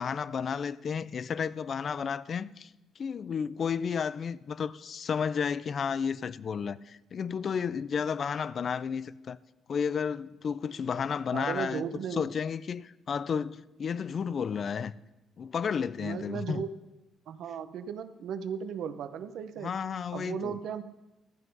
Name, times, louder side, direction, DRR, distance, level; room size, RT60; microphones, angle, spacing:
voice 1, 0.0-2.7 3.0-9.4 9.7-14.9 15.4-16.6 19.6-20.6, left 6 dB, 50° left, 0.4 m, -32 dB
voice 2, 11.3-12.3 16.0-16.7 17.3-19.7 20.1-20.8, right 7 dB, 75° right, 0.8 m, -36 dB
13.5 x 7.8 x 5.4 m
cardioid pair, 90°, 0 cm